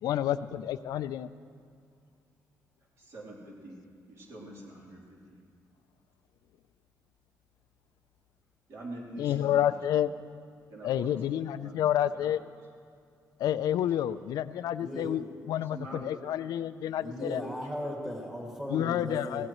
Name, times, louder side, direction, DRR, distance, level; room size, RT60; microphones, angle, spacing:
voice 1, 0.0-1.3 9.2-10.1 10.8-12.4 13.4-17.4 18.7-19.5, left 11 dB, 85° left, 13 dB, 0.4 m, -29 dB
voice 2, 3.0-3.8 4.1-5.4 8.7-9.8 10.7-11.2 11.6-11.8 12.2-12.3 13.8-14.2 15.6-16.1 17.2-17.3, right 2 dB, 50° right, -4 dB, 3.4 m, -45 dB
voice 3, 14.8-15.1 17.0-19.5, equal, 5° right, -3 dB, 2.2 m, -37 dB
22.0 x 17.0 x 3.1 m, 2.3 s
cardioid pair, 180°, 6 cm